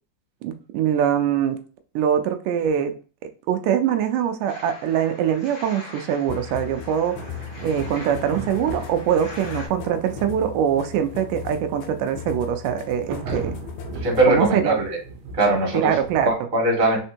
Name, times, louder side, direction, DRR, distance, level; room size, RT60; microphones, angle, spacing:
voice 1, 0.4-1.6 2.0-3.0 3.5-7.2 7.6-13.5 14.3-14.8 15.7-16.3, right 9 dB, 85° right, 7 dB, 2.1 m, -23 dB
sound 1, 4.5-9.7, left 2 dB, 70° left, 0.5 m, -42 dB
sound 2, 6.3-14.3, left 9 dB, 90° left, 2.3 m, -38 dB
sound 3, 7.2-16.3, right 4 dB, 70° right, 1.8 m, -38 dB
voice 2, 13.9-15.0 15.3-17.0, right 2 dB, 30° right, -1 dB, 1.7 m, -21 dB
4.4 x 4.1 x 2.8 m, 0.38 s
omnidirectional pair, 3.7 m